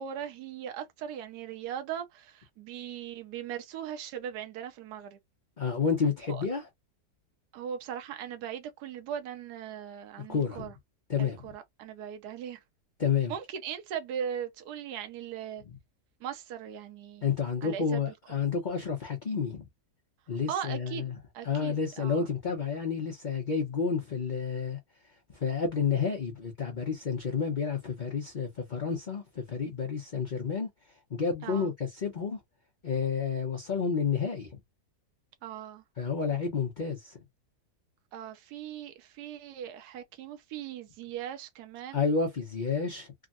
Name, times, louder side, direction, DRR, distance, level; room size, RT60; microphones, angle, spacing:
voice 1, 0.0-5.2 6.3-6.4 7.5-10.7 11.2-12.6 13.3-15.6 16.2-17.3 17.6-18.0 20.5-21.1 21.3-22.3 31.4-31.7 35.4-35.8 38.1-42.0, right 9 dB, 75° right, 1.2 m, -39 dB
voice 2, 5.6-6.7 10.3-10.7 11.1-11.4 13.0-13.3 17.2-19.6 20.3-21.2 21.4-24.8 25.3-30.7 31.1-32.4 32.8-34.6 36.0-37.2 41.9-43.1, left 6 dB, 40° left, 0.7 m, -30 dB
3.5 x 2.2 x 2.4 m
omnidirectional pair, 1.8 m